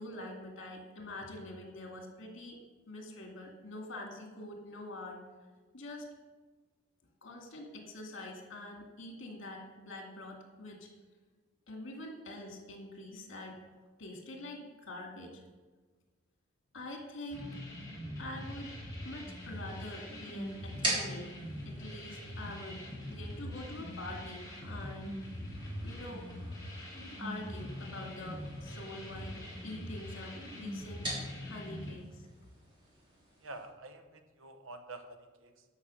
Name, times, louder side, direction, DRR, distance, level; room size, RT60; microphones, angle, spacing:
voice 1, 0.0-2.6 2.9-5.2 5.7-6.1 7.2-10.9 11.7-13.6 14.0-15.5 16.7-17.6 18.2-18.8 19.0-21.3 21.7-25.2 25.8-26.3 27.2-31.1 31.4-32.3, left 1 dB, 65° left, 2 dB, 2.2 m, -45 dB
sound 1, 17.3-31.9, left 1 dB, 20° left, 3.0 m, -43 dB
sound 2, 19.3-33.7, right 1 dB, 25° right, 3.5 m, -44 dB
voice 2, 33.4-35.6, right 2 dB, 80° right, 7 dB, 1.1 m, -48 dB
11.5 x 5.9 x 6.3 m, 1.3 s
head